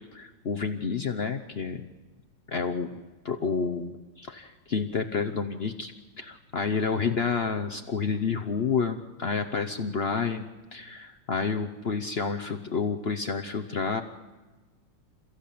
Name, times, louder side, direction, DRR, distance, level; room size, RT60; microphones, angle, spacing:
voice 1, 0.1-1.9 2.5-2.9 3.2-14.0, left 5 dB, 55° left, 6 dB, 0.6 m, -29 dB
28.5 x 15.0 x 8.5 m, 1.2 s
omnidirectional pair, 2.2 m